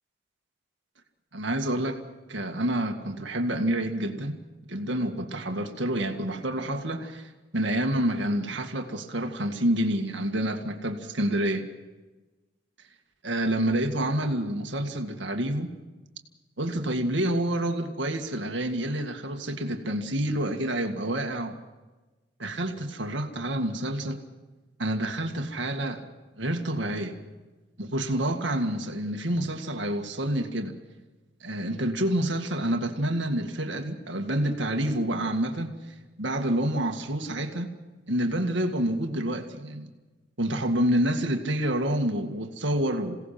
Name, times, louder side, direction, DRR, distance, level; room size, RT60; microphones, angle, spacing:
voice 1, 1.3-2.0 2.3-4.4 4.7-11.7 13.2-15.7 16.6-21.6 22.4-24.2 24.8-26.1 26.4-27.2 27.8-30.8 31.4-35.8 36.2-37.7 38.1-39.9 40.4-43.2, right 1 dB, 70° right, 4 dB, 2.0 m, -28 dB
27.5 x 17.5 x 5.9 m, 1.2 s
head